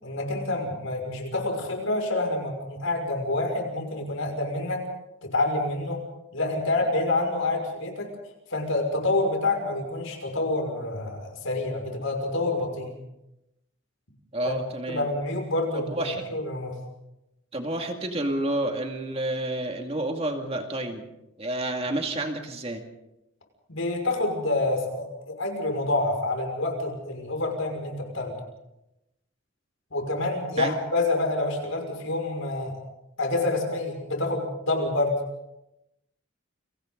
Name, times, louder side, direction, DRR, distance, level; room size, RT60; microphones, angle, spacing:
voice 1, 0.0-4.8 5.2-6.0 6.3-8.1 8.5-12.9 14.4-14.6 14.9-16.7 21.9-22.0 23.7-28.4 29.9-32.8 33.2-35.2, left 2 dB, 80° left, 2 dB, 5.9 m, -27 dB
voice 2, 14.3-15.1 15.7-16.3 17.5-21.1 21.4-22.8 30.6-30.7, right 1 dB, 30° right, 3 dB, 2.4 m, -30 dB
30.0 x 24.0 x 4.0 m, 0.90 s
head